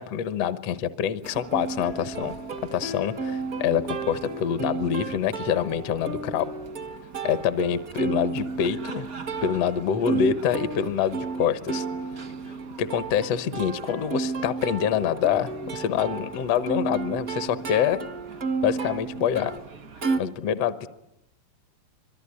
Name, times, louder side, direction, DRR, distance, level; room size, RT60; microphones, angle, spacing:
voice 1, 0.0-2.4 2.7-6.5 7.2-9.1 9.4-11.8 12.8-18.0 18.6-19.5 20.2-20.9, left 8 dB, 75° left, 12 dB, 1.5 m, -26 dB
Plucked string instrument, 1.2-20.2, right 4 dB, 70° right, 0.8 m, -32 dB
24.5 x 23.0 x 9.9 m, 0.84 s
omnidirectional pair, 4.5 m